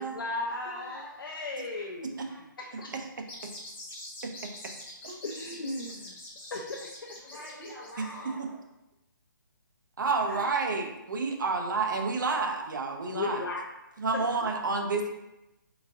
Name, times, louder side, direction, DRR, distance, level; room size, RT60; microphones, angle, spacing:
voice 1, 0.0-2.2 2.8-2.9 5.2-6.1 6.5-7.4 10.3-10.4 13.1-13.6 14.1-14.2, left 2 dB, 80° left, -1 dB, 0.5 m, -36 dB
voice 2, 0.6-1.1 1.7-1.9 2.2-2.7 7.1-8.6, left 1 dB, ahead, -14 dB, 0.4 m, -45 dB
voice 3, 2.9-3.5 4.2-4.5 5.0-5.2 8.0-8.1 8.4-8.5 10.0-13.4 14.0-15.1, right 4 dB, 65° right, 4 dB, 0.6 m, -30 dB
sound 1, 3.2-8.2, left 1 dB, 35° left, 1.3 m, -45 dB
3.8 x 3.4 x 2.7 m, 0.94 s
hypercardioid pair, 175°, 11 cm